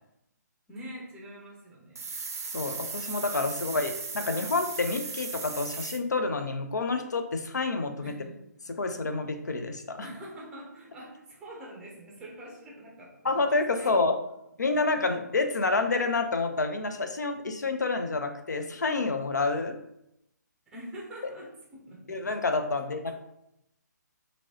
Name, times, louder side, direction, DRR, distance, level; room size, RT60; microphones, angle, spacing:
voice 1, 0.7-2.0 8.0-8.4 10.0-13.4 13.7-14.0 20.7-22.2 23.1-23.2, right 1 dB, 10° right, -3 dB, 0.6 m, -44 dB
sound 1, 1.9-6.0, right 4 dB, 50° right, 0.5 m, -37 dB
voice 2, 2.5-8.1 8.8-10.0 13.2-14.2 14.6-19.8 22.1-23.1, left 3 dB, 65° left, 6 dB, 0.5 m, -28 dB
2.9 x 2.7 x 2.9 m, 0.81 s
figure-of-eight pair, 140°, 10 cm